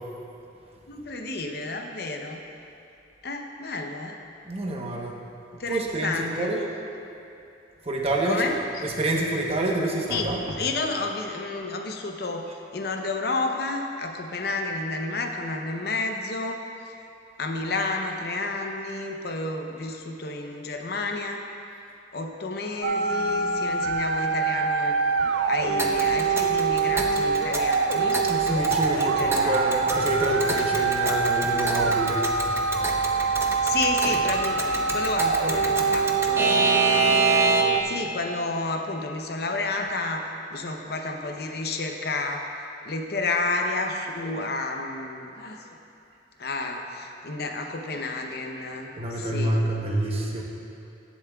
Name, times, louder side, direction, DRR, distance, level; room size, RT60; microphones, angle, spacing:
voice 1, 0.9-2.4 3.2-4.2 5.6-6.5 8.2-8.9 10.1-10.3 10.6-16.6 17.4-21.4 22.1-25.0 25.5-28.2 29.0-29.9 33.6-37.4 37.8-40.2 40.5-42.4 42.8-45.7 46.4-49.6, left 3 dB, 55° left, 3 dB, 0.8 m, -31 dB
voice 2, 4.5-5.1 5.7-6.6 7.9-10.4 28.3-32.4 34.1-34.2 49.0-50.4, right 1 dB, 35° right, -1 dB, 1.0 m, -27 dB
sound 1, 22.8-37.8, right 4 dB, 75° right, 0.4 m, -24 dB
Alarm / Clock, 25.8-37.9, right 2 dB, 15° right, 0.6 m, -28 dB
18.5 x 7.1 x 2.3 m, 2.7 s
head